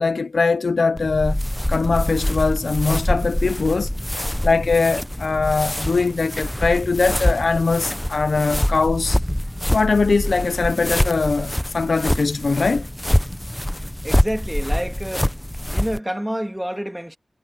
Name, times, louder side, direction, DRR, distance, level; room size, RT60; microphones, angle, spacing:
voice 1, 0.0-1.4 1.7-3.9 4.4-9.2 9.7-12.9, left 4 dB, 70° left, 0.5 m, -21 dB
sound 1, 1.0-16.0, left 1 dB, 10° left, 0.8 m, -25 dB
voice 2, 14.0-15.3 15.7-17.2, equal, 5° right, 2.4 m, -28 dB
wide cardioid pair, 70°, 0 cm